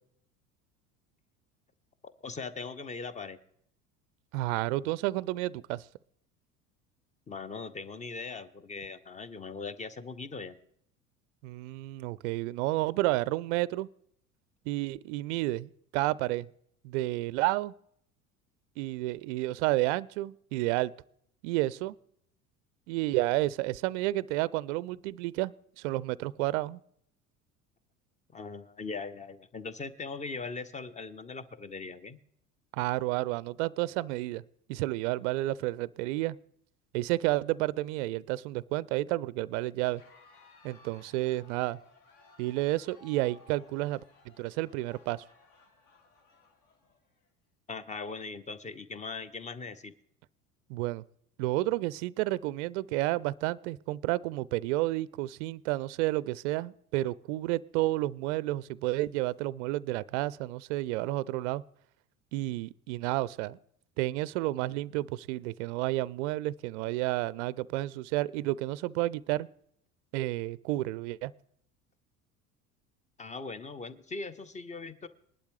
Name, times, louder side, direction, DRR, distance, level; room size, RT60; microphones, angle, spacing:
voice 1, 2.0-3.4 7.3-10.6 28.3-32.2 47.7-49.9 73.2-75.1, left 4 dB, 15° left, 16 dB, 0.9 m, -40 dB
voice 2, 4.3-5.8 11.4-13.9 14.7-16.5 16.8-17.7 18.8-20.9 21.4-21.9 22.9-26.8 32.7-34.4 34.7-36.4 36.9-40.0 40.6-41.8 42.4-44.0 44.4-45.2 50.7-51.0 51.4-61.6 62.3-63.6 64.0-69.5 70.1-71.3, right 18 dB, 55° right, 21 dB, 0.5 m, -31 dB
Crowd, 39.8-47.3, left 3 dB, 45° left, 2.0 m, -59 dB
20.5 x 11.5 x 3.2 m, 0.69 s
figure-of-eight pair, 70°, 44 cm